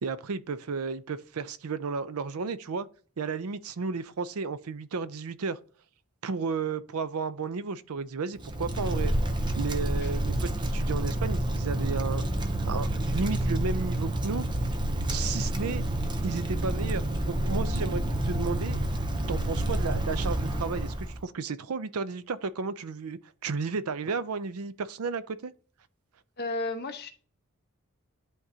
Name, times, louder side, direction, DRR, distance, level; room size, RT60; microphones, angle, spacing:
voice 1, 0.0-2.9 3.2-5.6 6.2-9.1 9.6-12.2 12.7-14.5 15.1-15.9 16.2-18.8 19.3-25.5, right 4 dB, 85° right, 0.5 m, -33 dB
Wind, 8.4-21.2, right 1 dB, 20° right, 0.6 m, -29 dB
voice 2, 26.4-27.1, left 2 dB, 45° left, 1.0 m, -33 dB
11.0 x 3.7 x 2.7 m
head